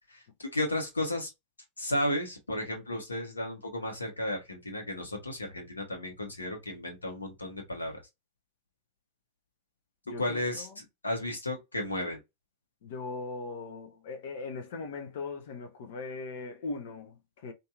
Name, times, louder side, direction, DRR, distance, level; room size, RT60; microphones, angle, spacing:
voice 1, 0.1-1.3 1.8-7.9 10.2-10.7 11.0-12.2, left 1 dB, 80° left, 1.1 m, -33 dB
voice 2, 10.1-10.8 12.8-17.5, left 3 dB, 55° left, 0.7 m, -39 dB
2.7 x 2.6 x 2.4 m
figure-of-eight pair, 90°, 0 cm